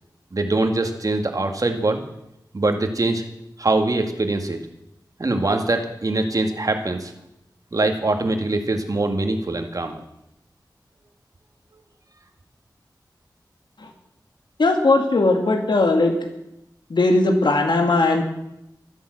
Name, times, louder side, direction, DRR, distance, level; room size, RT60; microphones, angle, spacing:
voice 1, 0.3-2.0 2.5-3.2 3.6-4.6 5.2-7.1 7.7-10.0, right 2 dB, 50° right, 5 dB, 2.0 m, -23 dB
voice 2, 14.6-16.2 16.9-18.2, left 2 dB, 80° left, 4 dB, 2.2 m, -18 dB
13.5 x 11.0 x 7.9 m, 0.84 s
wide cardioid pair, 80°, 8 cm